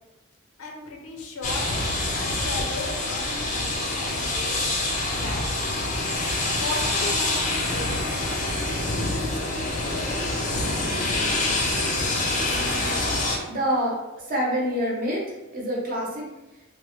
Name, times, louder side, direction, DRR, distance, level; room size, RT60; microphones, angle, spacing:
voice 1, 0.6-1.7 2.0-4.6 5.2-5.4 6.6-8.1 9.1-10.1, left 3 dB, 85° left, 1 dB, 0.6 m, -36 dB
sound 1, 1.4-13.4, left 2 dB, 35° left, 0.4 m, -26 dB
voice 2, 13.4-14.0 14.2-15.2 15.5-16.3, equal, 40° right, -3 dB, 0.7 m, -26 dB
3.1 x 2.1 x 3.0 m, 1.0 s
head